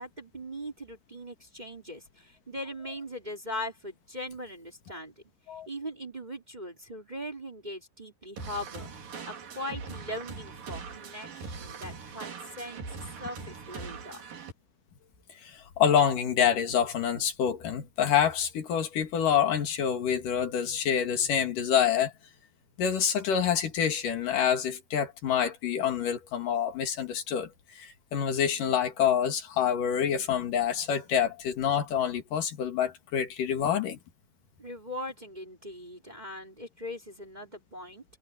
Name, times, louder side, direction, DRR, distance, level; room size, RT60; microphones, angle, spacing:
voice 1, 0.0-5.1 5.7-8.9 9.3-12.8 13.2-14.2 34.6-38.0, left 1 dB, 15° right, 3.0 m, -40 dB
sound 1, 8.4-14.5, right 5 dB, 90° right, 5.2 m, -41 dB
voice 2, 15.4-22.1 22.8-27.5 27.8-34.0, left 8 dB, 75° left, 3.7 m, -27 dB
omnidirectional pair, 3.8 m